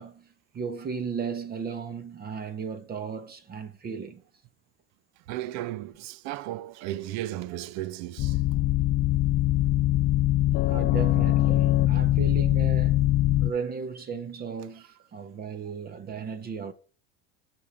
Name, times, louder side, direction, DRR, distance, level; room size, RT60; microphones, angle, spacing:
voice 1, 0.0-4.2 10.7-13.0 13.4-16.7, right 6 dB, 30° right, 1.0 m, -35 dB
voice 2, 5.3-8.4, right 14 dB, 60° right, 0.7 m, -35 dB
sound 1, 8.2-13.5, left 15 dB, 40° left, 0.4 m, -22 dB
7.6 x 6.2 x 6.4 m
supercardioid pair, 110°, 31 cm